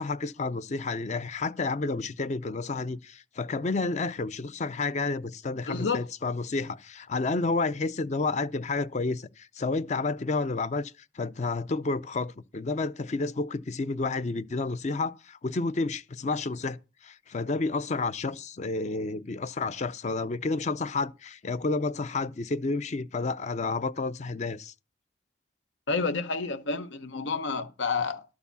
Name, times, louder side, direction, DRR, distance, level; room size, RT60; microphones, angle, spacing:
voice 1, 0.0-16.8 17.0-24.7, left 3 dB, 40° left, 0.4 m, -30 dB
voice 2, 5.7-6.0 25.9-28.2, left 4 dB, 90° left, 0.8 m, -29 dB
12.0 x 4.9 x 6.8 m
head